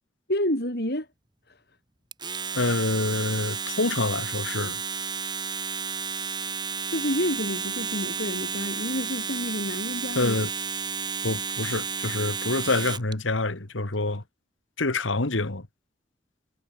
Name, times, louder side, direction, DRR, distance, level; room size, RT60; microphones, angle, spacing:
voice 1, 0.3-1.1 6.9-10.4, left 1 dB, 55° left, 7.7 m, -29 dB
Domestic sounds home sounds, 2.1-13.1, right 6 dB, 25° right, 2.0 m, -32 dB
voice 2, 2.6-4.8 10.2-10.5 11.2-14.2 14.8-15.7, left 2 dB, 85° left, 2.0 m, -26 dB
head